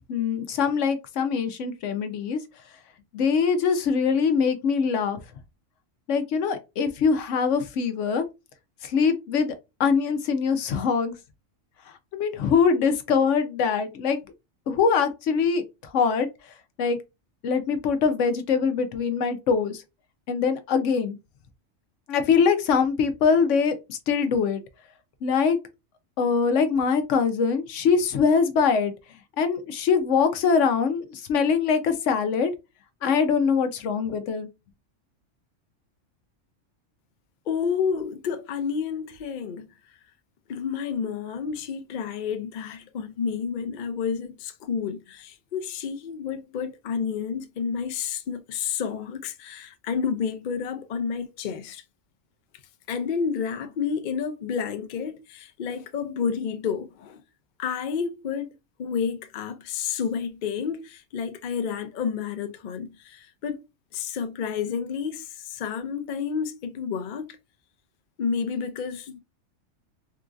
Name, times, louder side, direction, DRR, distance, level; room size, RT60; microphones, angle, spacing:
voice 1, 0.1-2.4 3.1-5.2 6.1-8.3 8.8-11.1 12.1-14.2 14.7-16.3 16.8-17.0 17.4-19.8 20.3-21.2 22.1-24.6 25.2-25.6 26.2-28.9 29.4-32.5 33.0-34.5, left 5 dB, 75° left, 1.0 m, -23 dB
voice 2, 37.5-39.7 40.5-51.8 52.9-57.2 57.6-58.5 58.8-63.6 63.9-67.3 68.2-69.2, left 6 dB, 60° left, 0.5 m, -30 dB
3.8 x 2.4 x 2.5 m
omnidirectional pair, 1.3 m